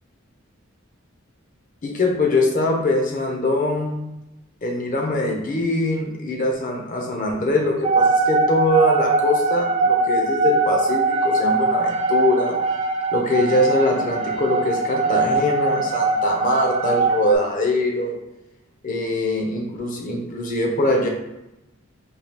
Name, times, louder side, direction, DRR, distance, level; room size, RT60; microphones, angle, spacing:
voice 1, 1.8-4.0 4.6-12.6 13.1-18.2 18.8-21.1, left 1 dB, 40° left, 1 dB, 0.7 m, -22 dB
sound 1, 7.8-17.3, right 3 dB, 30° right, 0.4 m, -21 dB
4.4 x 2.3 x 3.4 m, 0.93 s
head